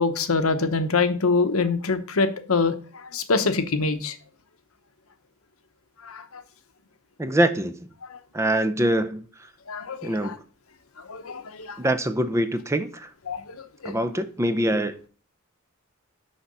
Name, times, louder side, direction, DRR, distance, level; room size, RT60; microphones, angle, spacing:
voice 1, 0.0-4.1 6.0-6.4 8.1-8.2 9.7-10.4 11.1-11.8 13.3-13.9, left 4 dB, 70° left, 0.9 m, -25 dB
voice 2, 7.2-7.7 8.3-9.3 10.0-10.4 11.8-13.1 13.8-15.1, right 1 dB, 15° right, 0.5 m, -24 dB
6.5 x 5.7 x 5.4 m
head